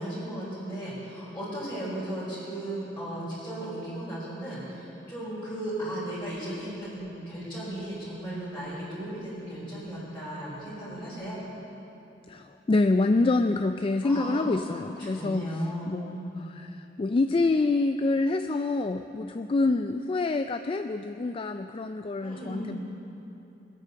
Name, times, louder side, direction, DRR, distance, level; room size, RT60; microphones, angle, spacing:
voice 1, 0.0-11.4 14.0-16.4 22.2-22.8, right 1 dB, 10° left, -13 dB, 4.4 m, -36 dB
voice 2, 12.3-15.5 15.9-22.8, left 3 dB, 30° left, 8 dB, 0.3 m, -26 dB
20.5 x 8.5 x 6.8 m, 3.0 s
head